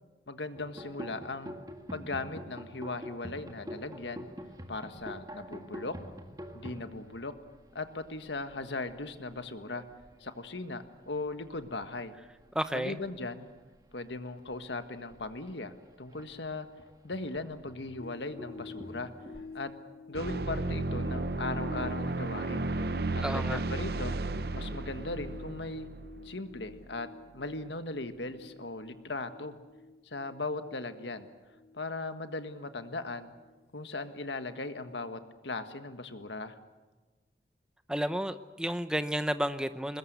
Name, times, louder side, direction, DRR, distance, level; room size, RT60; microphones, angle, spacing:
voice 1, 0.3-1.6 1.9-4.3 4.7-5.9 6.5-7.3 7.7-9.8 10.2-12.1 12.7-13.5 13.9-16.7 17.0-19.1 19.5-19.7 20.1-22.7 23.1-24.1 24.5-25.9 26.2-27.1 27.3-29.6 30.0-31.3 31.7-33.3 33.7-36.6, left 2 dB, 85° left, 9 dB, 1.6 m, -38 dB
sound 1, 0.5-11.9 12.2-12.7 13.0-19.6, equal, 20° right, 1.6 m, -47 dB
voice 2, 12.5-13.0 23.2-23.6 37.9-40.0, equal, 5° right, 11 dB, 0.8 m, -31 dB
sound 2, 18.0-34.5 34.8-35.0, left 4 dB, 55° left, 0.9 m, -50 dB
sound 3, 20.1-26.8, right 2 dB, 60° right, 0.7 m, -34 dB
22.5 x 20.5 x 8.1 m, 1.3 s
head